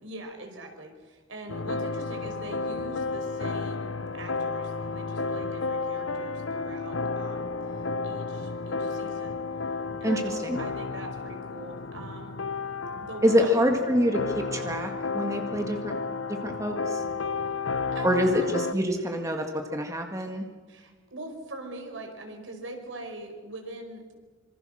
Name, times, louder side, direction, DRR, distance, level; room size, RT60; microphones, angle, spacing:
voice 1, 0.0-7.5 8.0-9.4 10.0-12.4 13.0-13.8 17.9-18.5 20.7-24.2, right 2 dB, 75° right, 4 dB, 4.9 m, -42 dB
sound 1, 1.5-18.7, left 4 dB, 90° left, 1.0 m, -32 dB
voice 2, 10.0-10.6 13.2-15.9 16.4-17.0 18.0-19.4 19.7-20.5, equal, 15° right, 3 dB, 2.0 m, -26 dB
26.0 x 25.5 x 6.4 m, 1.4 s
head